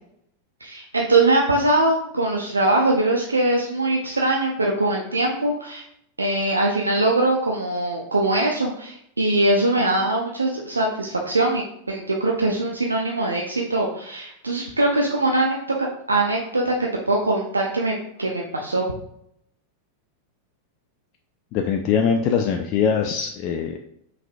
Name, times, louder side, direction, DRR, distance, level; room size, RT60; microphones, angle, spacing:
voice 1, 0.6-5.9 6.2-16.8 17.1-18.9, right 2 dB, 80° right, 0 dB, 0.5 m, -22 dB
voice 2, 21.5-23.8, left 7 dB, 40° left, 4 dB, 0.3 m, -22 dB
5.6 x 3.3 x 2.6 m, 0.75 s
figure-of-eight pair, 90°, 0 cm